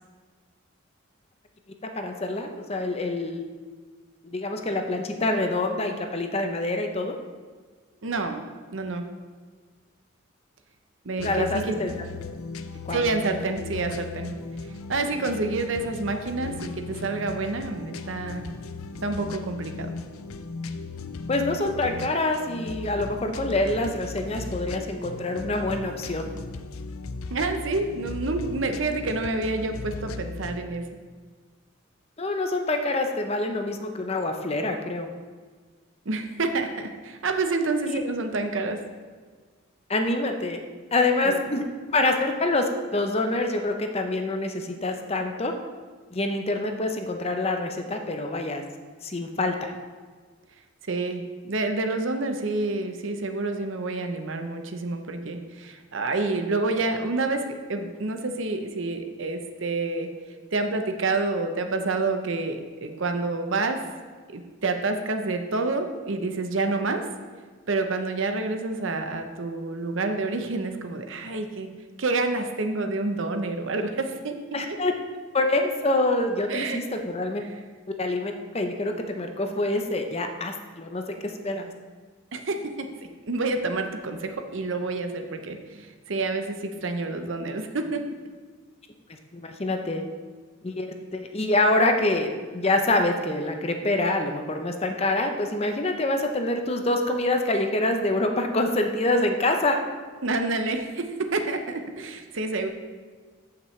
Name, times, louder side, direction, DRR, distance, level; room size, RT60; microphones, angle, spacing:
voice 1, 1.8-3.4 4.2-7.2 11.2-12.1 12.9-13.0 21.3-26.3 32.2-35.1 37.9-38.0 39.9-40.6 40.9-45.5 46.1-48.6 49.0-49.7 74.5-74.9 75.3-77.4 78.0-81.7 89.3-90.0 90.6-99.8, left 2 dB, 30° left, 5 dB, 0.7 m, -26 dB
voice 2, 8.0-8.4 8.7-9.1 11.0-11.8 12.9-14.3 14.9-18.5 19.0-19.9 27.3-30.9 36.1-38.8 41.2-41.4 50.9-60.1 60.5-63.8 64.3-67.1 67.7-71.7 72.0-74.4 74.7-74.8 76.5-76.8 77.4-77.5 82.3-88.0 100.2-102.7, right 3 dB, 65° right, 6 dB, 0.8 m, -28 dB
sound 1, 11.2-30.6, left 3 dB, 90° left, 0.5 m, -37 dB
14.0 x 5.9 x 3.2 m, 1.5 s
head